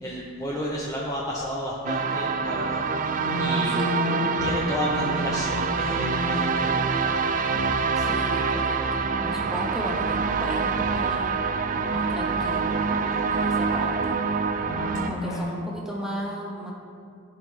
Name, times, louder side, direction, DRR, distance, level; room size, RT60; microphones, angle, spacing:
voice 1, 0.0-2.8 3.3-3.8 4.4-7.3, equal, 15° left, -4 dB, 0.7 m, -32 dB
sound 1, 1.9-15.1, right 5 dB, 40° right, 0.4 m, -26 dB
sound 2, 3.2-8.0 8.3-9.9 10.2-10.4 10.7-14.2 14.6-15.4, left 1 dB, 55° left, 1.6 m, -34 dB
voice 2, 3.7-4.0 8.0-11.3 11.9-12.8 13.3-14.2 15.0-16.7, equal, 5° right, -3 dB, 1.1 m, -35 dB
14.5 x 5.0 x 3.3 m, 2.3 s
head